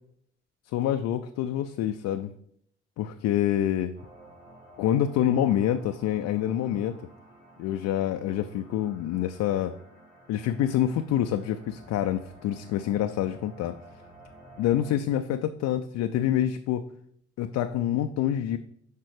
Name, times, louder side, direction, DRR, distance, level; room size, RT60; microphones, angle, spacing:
voice 1, 0.7-2.3 3.0-4.0 4.8-7.0 7.6-9.8 10.3-13.8 14.6-16.8 17.4-18.6, left 11 dB, 60° left, 8 dB, 0.5 m, -26 dB
sound 1, 3.9-14.9, right 1 dB, 85° right, 2.8 m, -53 dB
6.6 x 5.3 x 4.8 m, 0.69 s
hypercardioid pair, 45°, 32 cm